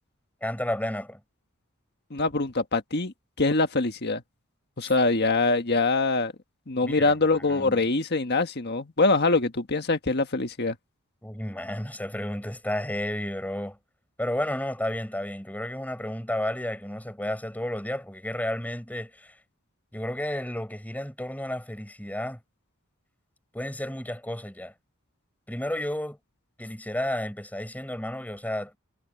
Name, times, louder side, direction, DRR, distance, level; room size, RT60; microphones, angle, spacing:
voice 1, 0.4-1.2 4.8-4.9 6.8-7.1 7.5-7.8 11.2-13.8 14.2-19.3 19.9-22.4 23.5-24.7 25.5-26.2 26.6-28.7, left 1 dB, 10° left, 5.0 m, -32 dB
voice 2, 2.1-4.2 4.8-6.3 6.7-10.8, left 3 dB, 50° left, 1.6 m, -24 dB
head